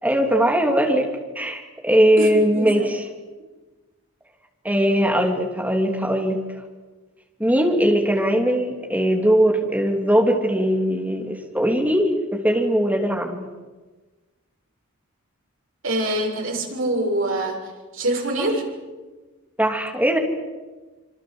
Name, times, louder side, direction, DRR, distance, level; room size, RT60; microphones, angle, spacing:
voice 1, 0.0-1.1 1.3-3.0 4.6-6.4 7.4-13.4 18.4-18.5 19.6-20.2, equal, 5° right, 1 dB, 3.3 m, -20 dB
voice 2, 2.2-2.9 15.8-17.6 17.9-18.6, right 1 dB, 65° right, 0 dB, 6.9 m, -24 dB
26.5 x 25.0 x 8.1 m, 1.3 s
head